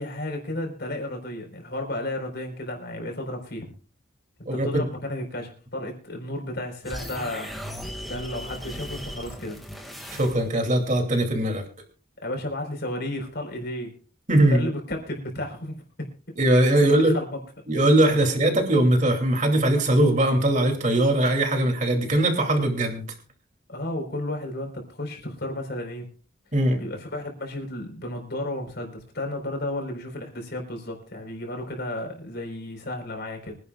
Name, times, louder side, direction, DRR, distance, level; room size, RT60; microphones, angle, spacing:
voice 1, 0.0-3.7 4.6-7.5 8.1-9.6 12.2-13.9 14.5-16.1 16.8-17.4 23.7-26.1 26.8-33.6, left 1 dB, 55° left, 2 dB, 4.4 m, -33 dB
voice 2, 4.5-4.9 10.1-11.6 14.3-14.7 16.4-17.1 17.7-23.0 26.5-26.8, right 1 dB, 40° right, 4 dB, 2.8 m, -20 dB
sound 1, 6.8-10.7, equal, ahead, 2.1 m, -37 dB
25.0 x 11.0 x 2.4 m, 0.38 s
head